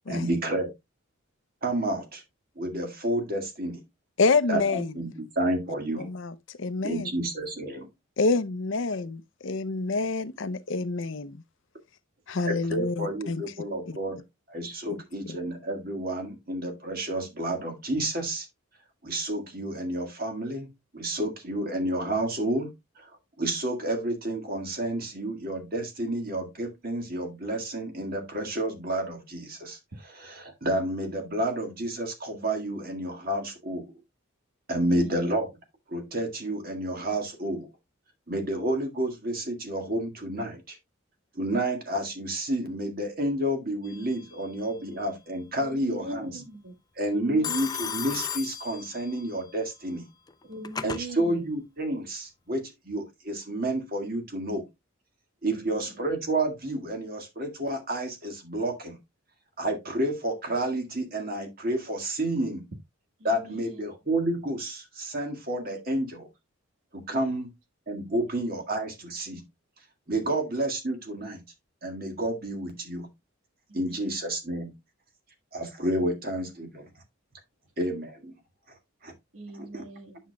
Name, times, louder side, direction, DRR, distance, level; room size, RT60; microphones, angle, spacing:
voice 1, 0.1-0.7 1.6-2.2 2.6-3.8 4.5-6.1 6.8-7.9 12.5-14.2 14.5-18.5 19.0-20.7 20.9-22.7 23.0-23.1 23.4-29.8 30.1-33.9 34.7-35.5 35.9-37.7 38.3-40.8 41.4-46.4 47.0-50.1 50.8-54.6 55.4-59.0 59.6-62.6 63.2-66.3 66.9-67.5 67.9-69.4 70.1-71.4 71.8-73.1 73.7-74.7 75.5-76.9 77.8-78.3 79.0-79.1 79.5-79.8, right 1 dB, 45° right, 1.9 m, -30 dB
voice 2, 4.2-4.9 6.0-7.1 8.2-11.4 12.3-13.4 13.9-14.0, left 3 dB, 60° left, 0.6 m, -27 dB
voice 3, 34.8-35.3 45.6-46.7 47.1-47.6 50.4-51.5 55.5-56.0 63.2-63.8 70.2-70.3 73.7-74.0 79.3-80.2, right 1 dB, 75° right, 1.7 m, -41 dB
Telephone, 43.8-44.4 47.4-49.3 50.3-51.0, left 7 dB, 20° left, 0.4 m, -35 dB
9.4 x 6.3 x 2.3 m
head